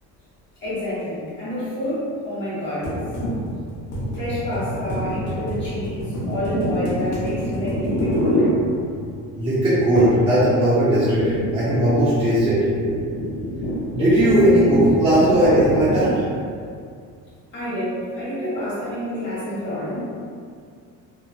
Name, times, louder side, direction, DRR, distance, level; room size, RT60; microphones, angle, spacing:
voice 1, 0.6-3.1 4.1-8.6 17.5-20.0, equal, 35° left, -10 dB, 1.1 m, -28 dB
sound 1, 2.8-9.2 10.0-10.3 10.6-16.3, equal, 90° left, 0.9 m, -26 dB
voice 2, 9.4-12.6 13.9-16.1, right 1 dB, 15° right, -13 dB, 0.5 m, -18 dB
2.9 x 2.0 x 2.5 m, 2.2 s
cardioid pair, 165°, 33 cm